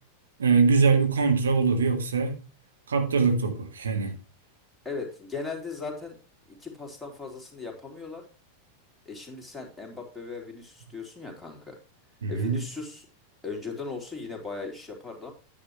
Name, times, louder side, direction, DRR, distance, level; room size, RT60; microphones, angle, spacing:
voice 1, 0.4-2.4 2.9-4.2 12.2-12.6, right 4 dB, 70° right, 2.3 m, -23 dB
voice 2, 4.9-6.2 6.5-8.2 9.1-11.8 12.3-13.1 13.4-15.3, left 4 dB, 5° left, 3.5 m, -38 dB
10.0 x 9.5 x 3.2 m
figure-of-eight pair, 90°, 0 cm